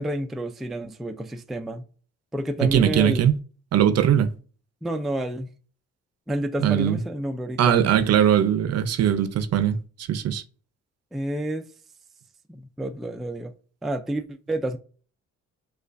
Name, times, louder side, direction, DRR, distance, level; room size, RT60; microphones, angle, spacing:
voice 1, 0.0-1.8 2.3-3.2 4.8-5.5 6.3-7.9 11.1-11.6 12.5-13.5 13.8-14.8, right 1 dB, ahead, 0.3 m, -29 dB
voice 2, 2.6-3.3 3.7-4.3 6.6-7.0 7.6-9.8 10.1-10.4, right 9 dB, 60° right, 0.5 m, -20 dB
6.7 x 2.3 x 2.5 m
cardioid pair, 90°, 30 cm